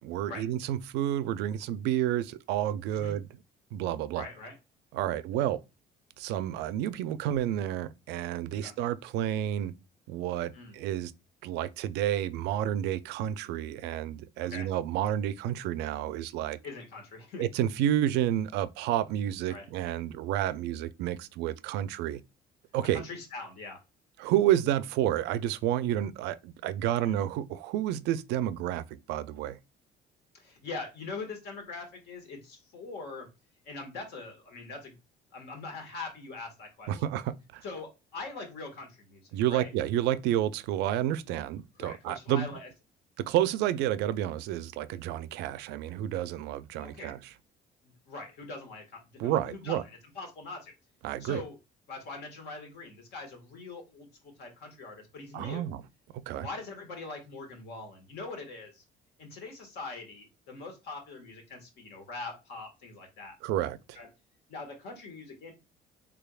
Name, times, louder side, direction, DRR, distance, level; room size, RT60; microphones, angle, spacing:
voice 1, 0.0-3.4 3.7-4.3 4.9-5.6 6.2-9.7 10.1-11.1 11.4-16.6 17.4-22.2 22.7-23.0 24.2-29.6 36.9-37.6 39.3-42.5 43.2-47.2 49.2-49.8 51.0-51.4 55.3-55.8 56.3-56.5 63.4-64.0, right 12 dB, 90° right, 0.4 m, -30 dB
voice 2, 4.1-4.5 8.6-8.7 10.5-10.8 14.4-14.7 16.6-17.4 19.5-19.6 22.9-23.8 26.9-27.2 30.3-33.3 33.6-34.9 35.3-36.9 37.6-39.2 39.5-39.7 41.8-42.7 46.7-47.1 47.8-50.7 51.2-51.6 51.9-55.6 56.4-58.8 59.2-63.3 63.9-64.1 64.5-65.5, left 3 dB, 75° left, 1.5 m, -42 dB
3.6 x 3.4 x 2.3 m
cardioid pair, 110°, 17 cm